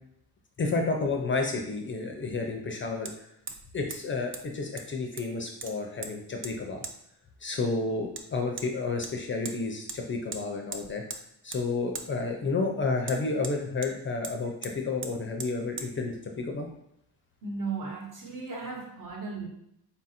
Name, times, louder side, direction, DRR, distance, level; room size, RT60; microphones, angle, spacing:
voice 1, 0.6-3.3 3.7-6.8 7.4-11.0 11.4-16.7, left 3 dB, 35° left, 2 dB, 0.4 m, -31 dB
Hammer, 1.1-1.2 3.1-3.2 3.5-3.7 3.9-4.0 4.3-4.4 4.8-5.3 5.6-6.1 6.4-6.5 6.8-7.0 8.2-8.3 8.6-8.7 9.0-9.6 9.9-10.0 10.3-10.4 10.7-11.2 11.5-11.6 11.9-12.1 13.0-13.9 14.2-14.4 14.6-14.7 15.0-15.1 15.4-15.5 15.8-15.9, right 4 dB, 35° right, 0.4 m, -39 dB
voice 2, 17.4-19.5, right 4 dB, 55° right, 0 dB, 1.1 m, -36 dB
3.9 x 2.5 x 4.2 m, 0.75 s
cardioid pair, 150°, 38 cm